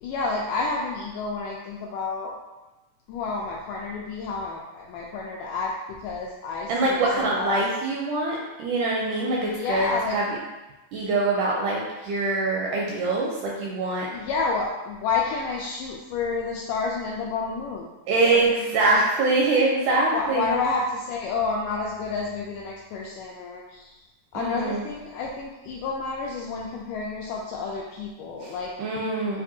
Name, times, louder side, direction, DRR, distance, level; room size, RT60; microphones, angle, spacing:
voice 1, 0.0-2.3 3.1-7.6 9.4-10.2 14.1-17.9 18.2-18.5 18.9-19.0 19.9-24.0 24.3-28.7, left 4 dB, 85° left, -2 dB, 1.8 m, -30 dB
voice 2, 6.7-10.3 10.9-14.1 18.1-20.5 24.3-24.9 28.4-29.4, right 2 dB, 80° right, -3 dB, 1.8 m, -24 dB
7.2 x 2.5 x 2.7 m, 1.1 s
omnidirectional pair, 4.1 m